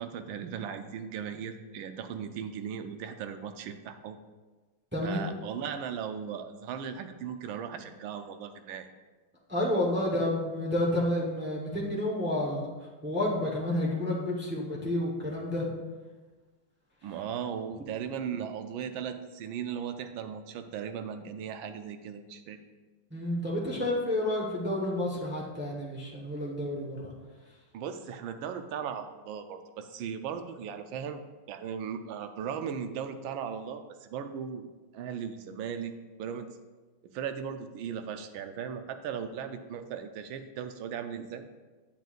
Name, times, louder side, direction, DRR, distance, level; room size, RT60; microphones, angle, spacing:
voice 1, 0.0-4.2 5.0-8.9 17.0-22.6 27.7-31.2 31.5-34.7 34.9-35.9 36.2-36.5 37.1-41.4, right 7 dB, 80° right, 8 dB, 1.4 m, -37 dB
voice 2, 4.9-5.2 9.5-12.7 13.0-15.7 23.1-27.1, left 1 dB, 15° right, -4 dB, 0.3 m, -30 dB
9.2 x 7.6 x 2.5 m, 1.3 s
omnidirectional pair, 2.3 m